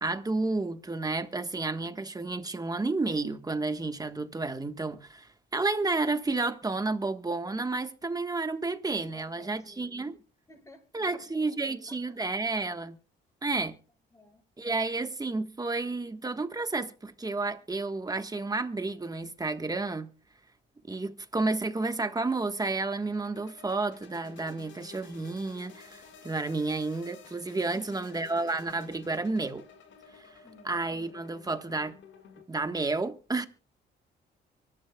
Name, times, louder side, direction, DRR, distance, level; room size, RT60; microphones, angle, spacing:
voice 1, 0.0-10.2 10.9-13.0 13.4-13.7 14.6-20.1 20.9-29.6 30.2-30.4 30.6-32.0 32.5-33.5, right 3 dB, 20° right, 1.4 m, -31 dB
voice 2, 9.1-10.1 10.5-11.6 11.9-12.2 14.1-14.4 27.7-28.2 30.4-30.8, left 2 dB, 15° left, 6.7 m, -54 dB
sound 1, 22.8-32.5, left 6 dB, 70° left, 2.1 m, -53 dB
24.5 x 12.5 x 2.3 m
cardioid pair, 90°, 20 cm